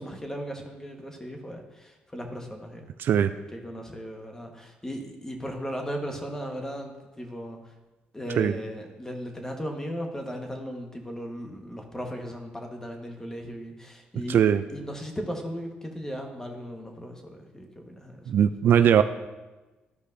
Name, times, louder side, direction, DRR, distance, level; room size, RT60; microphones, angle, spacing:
voice 1, 0.0-2.9 3.5-7.7 8.1-14.4 14.7-18.3, equal, 15° left, 3 dB, 1.4 m, -37 dB
voice 2, 3.0-3.3 8.4-8.5 14.3-14.6 18.3-19.0, right 9 dB, 65° right, 11 dB, 0.3 m, -20 dB
13.5 x 5.0 x 2.7 m, 1.1 s
cardioid pair, 75°, 4 cm